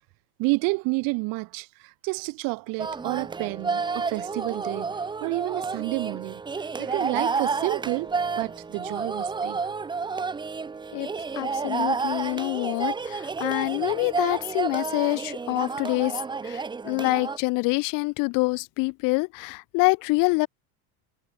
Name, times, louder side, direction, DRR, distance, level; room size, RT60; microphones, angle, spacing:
voice 1, 0.4-5.0 5.2-6.4 6.8-9.6, right 27 dB, 50° right, 6.5 m, -30 dB
sound 1, 2.8-17.4, right 4 dB, 10° right, 1.9 m, -30 dB
voice 2, 11.4-16.2 16.4-20.5, left 28 dB, 45° left, 1.8 m, -26 dB
cardioid pair, 180°, 43 cm